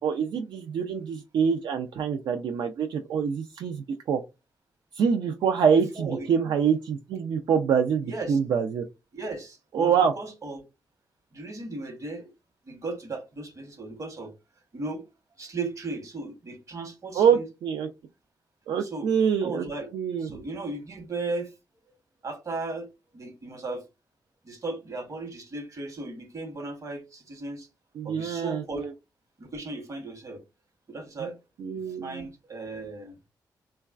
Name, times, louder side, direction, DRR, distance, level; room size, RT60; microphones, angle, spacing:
voice 1, 0.0-4.2 5.0-8.8 9.7-10.1 17.1-17.9 18.7-19.6 19.9-20.4 28.0-28.9 31.2-31.3 31.6-32.3, right 7 dB, 75° right, 0.3 m, -25 dB
voice 2, 5.7-6.3 8.0-8.4 9.1-10.6 11.3-12.3 12.7-14.3 14.7-15.0 15.4-17.4 18.8-19.1 19.4-19.9 20.2-21.5 22.2-23.8 24.4-27.7 28.0-28.9 29.4-30.4 30.9-31.4 31.7-33.2, right 3 dB, 45° right, 1.0 m, -36 dB
3.0 x 2.2 x 2.3 m
cardioid pair, 70°, 8 cm